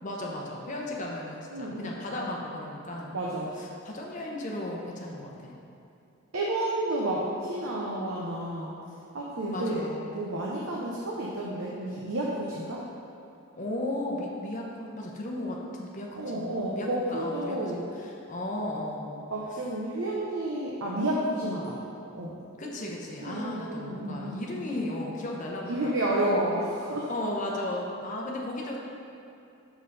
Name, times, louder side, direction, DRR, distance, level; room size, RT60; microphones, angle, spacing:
voice 1, 0.0-3.2 3.6-5.6 9.5-10.3 13.6-19.2 19.5-19.6 22.6-25.9 27.1-28.8, left 1 dB, 35° left, -2 dB, 0.8 m, -35 dB
voice 2, 1.5-2.0 3.1-3.5 6.3-8.7 9.1-9.8 10.1-12.8 16.2-17.8 19.3-21.8 22.1-22.4 23.2-24.7 25.6-27.1, right 1 dB, 75° right, -5 dB, 0.7 m, -31 dB
6.0 x 5.4 x 4.0 m, 2.7 s
head